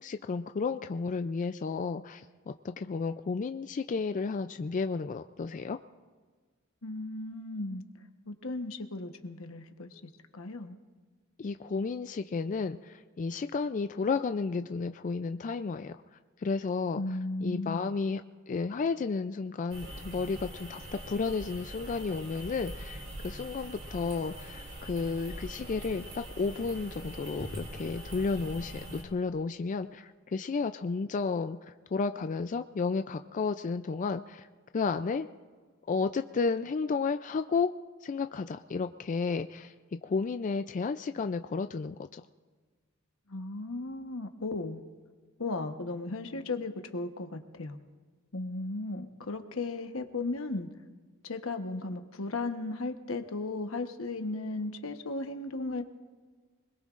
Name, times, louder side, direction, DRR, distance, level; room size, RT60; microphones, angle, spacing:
voice 1, 0.0-5.8 11.4-16.0 16.4-18.2 18.5-31.6 31.9-34.5 34.7-35.3 35.9-37.7 38.0-39.7 40.0-42.2, left 4 dB, 40° left, 9 dB, 0.4 m, -32 dB
voice 2, 6.8-7.8 8.3-10.0 10.3-10.8 16.9-18.0 43.3-44.8 45.4-47.8 48.3-50.7 51.2-55.8, left 2 dB, 80° left, 6 dB, 1.1 m, -36 dB
sound 1, 19.7-29.0, equal, 50° right, 3.1 m, -43 dB
26.0 x 21.0 x 2.5 m, 1.5 s
head